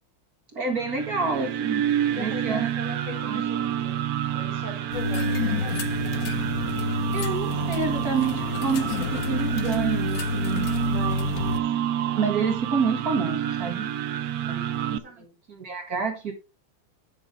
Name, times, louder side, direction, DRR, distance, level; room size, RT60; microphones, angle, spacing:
voice 1, 0.5-1.9 2.1-2.7 3.2-3.4 7.1-11.6 12.2-13.9 14.4-14.6 14.9-16.3, right 5 dB, 45° right, 2.2 m, -28 dB
sound 1, 0.7-15.0, right 10 dB, 85° right, 0.8 m, -28 dB
voice 2, 2.1-4.0 4.3-5.9 15.2-15.3, left 3 dB, 35° left, 2.1 m, -40 dB
sound 2, 4.9-11.6, left 4 dB, 65° left, 0.9 m, -29 dB
8.6 x 7.9 x 3.7 m
omnidirectional pair, 2.4 m